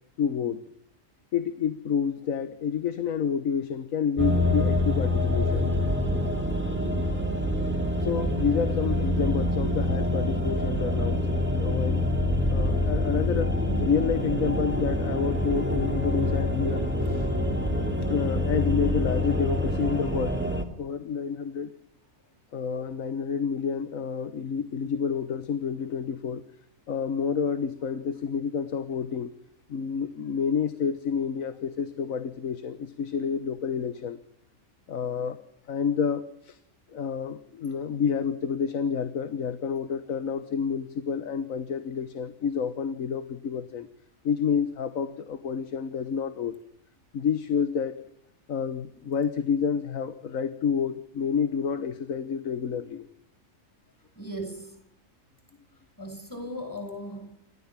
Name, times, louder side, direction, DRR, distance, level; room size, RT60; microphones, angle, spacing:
voice 1, 0.2-0.6 1.3-5.7 8.0-11.3 11.6-13.5 13.8-17.3 18.0-20.4 20.8-21.7 22.5-26.4 26.9-29.3 29.7-34.2 34.9-36.6 36.9-43.9 44.2-46.5 47.1-48.0 48.5-53.1, left 6 dB, 80° left, 12 dB, 1.6 m, -29 dB
sound 1, 4.2-20.6, left 1 dB, 10° right, 2.7 m, -26 dB
voice 2, 54.1-54.8 56.0-57.4, equal, 15° left, 5 dB, 6.6 m, -37 dB
29.0 x 14.0 x 7.4 m, 0.72 s
omnidirectional pair, 1.4 m